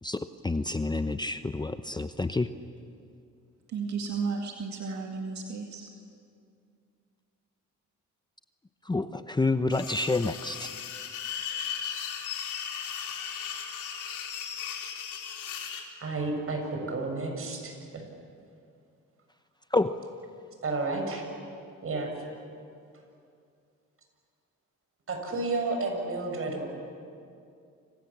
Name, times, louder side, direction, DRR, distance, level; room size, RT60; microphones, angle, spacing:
voice 1, 0.0-2.5 8.8-10.7 19.7-20.0, left 2 dB, 15° left, 10 dB, 0.8 m, -28 dB
voice 2, 3.7-5.9, right 5 dB, 65° right, 2 dB, 2.3 m, -33 dB
sound 1, 9.7-15.8, left 8 dB, 80° left, 3.9 m, -36 dB
voice 3, 16.0-18.0 20.6-21.3 21.8-22.1 25.1-26.6, right 3 dB, 45° right, 3 dB, 7.2 m, -31 dB
29.5 x 27.0 x 7.4 m, 2.4 s
cardioid pair, 90°, 30 cm